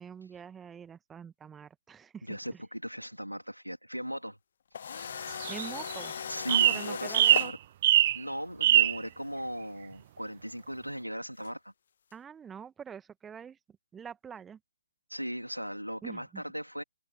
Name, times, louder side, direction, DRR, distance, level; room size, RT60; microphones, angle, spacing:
voice 1, 0.0-2.6 5.5-6.1 6.5-7.5 12.1-13.6 13.9-14.6 16.0-16.4, right 7 dB, 10° right, 1.6 m, -45 dB
voice 2, 2.2-4.4 4.8-5.3 6.3-7.6 8.1-11.7 15.1-16.8, equal, 90° right, 3.5 m, -38 dB
sound 1, 4.7-7.5 9.4-9.5 11.4-11.5, left 7 dB, 45° left, 0.8 m, -38 dB
sound 2, 5.3-6.1 6.5-6.8 7.1-7.5 7.8-8.2 8.6-9.0, right 12 dB, 35° right, 0.5 m, -22 dB
open air
figure-of-eight pair, 135°, 0 cm